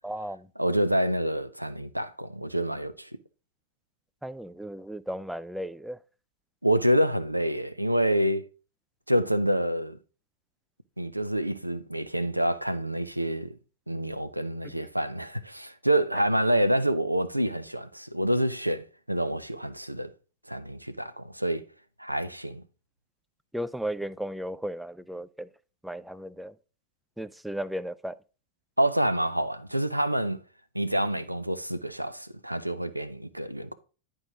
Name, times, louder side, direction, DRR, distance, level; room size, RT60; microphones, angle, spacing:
voice 1, 0.0-0.5 4.2-6.0 23.5-25.5 25.8-26.5 27.2-28.2, right 1 dB, 5° right, 0.3 m, -35 dB
voice 2, 0.6-3.1 6.6-8.5 9.1-10.0 11.0-13.6 13.9-20.1 20.5-21.6 22.0-22.6 28.8-30.4 30.7-33.7, right 1 dB, 90° right, 0.5 m, -27 dB
9.7 x 4.5 x 3.7 m
figure-of-eight pair, 90°, 0 cm